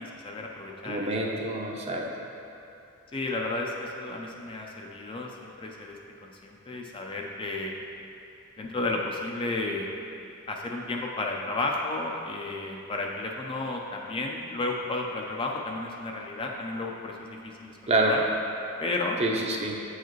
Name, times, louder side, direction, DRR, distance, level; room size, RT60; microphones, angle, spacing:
voice 1, 0.0-1.1 1.3-1.6 3.1-6.0 6.2-7.8 8.6-9.9 10.5-18.2 18.8-19.2, left 2 dB, 25° left, 0 dB, 0.4 m, -33 dB
voice 2, 0.8-2.1 17.9-18.1 19.2-19.7, right 2 dB, 30° right, 0 dB, 0.6 m, -27 dB
7.8 x 4.8 x 3.1 m, 2.6 s
head